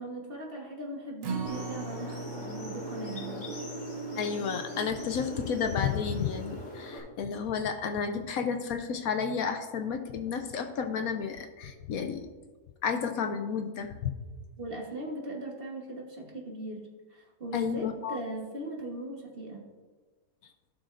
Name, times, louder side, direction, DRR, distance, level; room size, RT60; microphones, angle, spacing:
voice 1, 0.0-3.5 14.6-19.6, right 1 dB, 40° right, -1 dB, 1.4 m, -39 dB
Acoustic guitar, 1.2-7.5 7.9-8.0 8.4-8.5, right 4 dB, 70° right, 1.4 m, -42 dB
sound 1, 1.4-7.0, equal, 45° left, 2.2 m, -40 dB
voice 2, 4.2-12.3 12.8-14.1 17.5-18.2, left 6 dB, 70° left, 6 dB, 1.0 m, -31 dB
15.5 x 6.3 x 2.5 m, 1.4 s
omnidirectional pair, 1.7 m